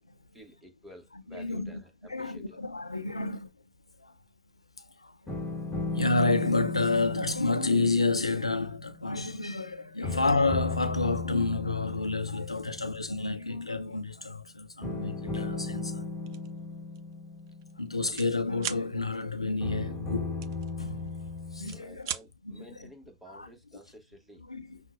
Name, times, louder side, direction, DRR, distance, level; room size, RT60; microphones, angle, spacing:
voice 1, 0.3-2.6 10.0-10.1 18.1-18.2 21.7-24.5, right 1 dB, 5° right, 1.0 m, -52 dB
voice 2, 1.3-3.5 4.0-4.1 4.8-5.1 5.9-16.1 17.8-20.5 20.8-21.1 21.5-22.1 22.4-22.9 23.3-23.5 24.5-24.8, left 3 dB, 85° left, 0.6 m, -30 dB
sound 1, 5.3-9.6 10.0-13.3 14.8-18.8 19.6-21.8, left 3 dB, 15° left, 1.4 m, -36 dB
sound 2, 16.3-16.5 16.9-17.1 17.4-18.3 18.6-18.9 20.4-21.2 21.5-22.3, right 11 dB, 45° right, 0.5 m, -37 dB
5.7 x 2.1 x 2.5 m
figure-of-eight pair, 100°, 3 cm